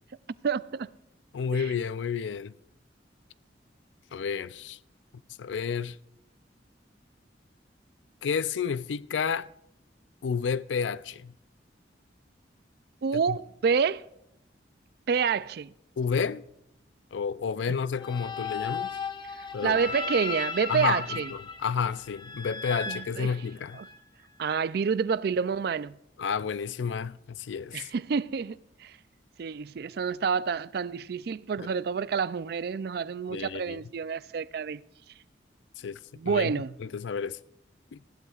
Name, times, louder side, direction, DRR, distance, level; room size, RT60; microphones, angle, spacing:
voice 1, 0.4-0.9 1.5-1.7 13.0-14.0 15.1-15.7 17.7-17.8 19.6-21.3 22.9-23.3 23.8-23.9 24.4-26.0 27.7-28.9 29.4-34.8 36.2-36.8, right 6 dB, 55° right, 0.4 m, -28 dB
voice 2, 1.3-2.5 4.1-4.8 5.4-6.0 8.2-9.5 10.2-11.3 13.3-13.4 16.0-16.4 17.1-19.0 19.5-19.8 20.7-23.8 26.2-27.9 31.6-31.7 33.3-33.8 35.8-36.0 36.3-36.5 36.8-37.4 37.9-38.0, left 6 dB, 85° left, 0.4 m, -30 dB
sound 1, 18.0-24.0, left 5 dB, 25° left, 0.9 m, -36 dB
20.0 x 14.5 x 2.4 m
head